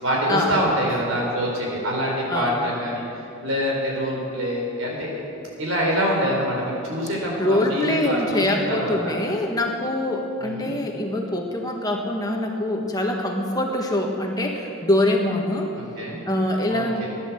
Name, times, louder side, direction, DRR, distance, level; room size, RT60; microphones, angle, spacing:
voice 1, 0.0-3.0 3.4-5.2 5.6-9.3 10.4-10.8 15.7-16.2 16.7-17.1, equal, 85° right, -2 dB, 4.5 m, -25 dB
voice 2, 7.4-15.7 16.3-17.0, left 1 dB, 20° left, 1 dB, 1.3 m, -24 dB
15.5 x 11.0 x 7.6 m, 2.8 s
head